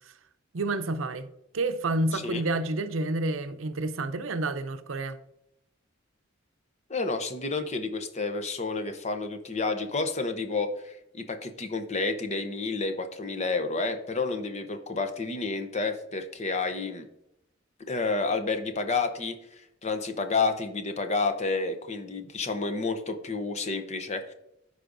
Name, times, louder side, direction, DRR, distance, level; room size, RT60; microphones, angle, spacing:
voice 1, 0.5-1.3 1.5-5.2, right 2 dB, 85° right, 0.6 m, -29 dB
voice 2, 2.1-2.4 6.9-17.1 17.9-24.3, left 3 dB, 35° left, 0.8 m, -30 dB
14.5 x 4.9 x 2.6 m
head